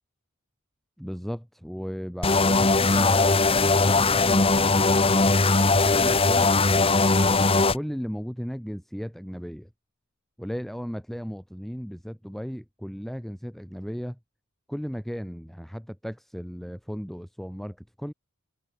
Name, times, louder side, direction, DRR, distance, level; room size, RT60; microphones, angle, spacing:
voice 1, 1.0-9.7 10.4-14.2 14.7-18.1, equal, ahead, 6.2 m, -36 dB
sound 1, 2.2-7.7, left 3 dB, 25° left, 1.3 m, -20 dB
head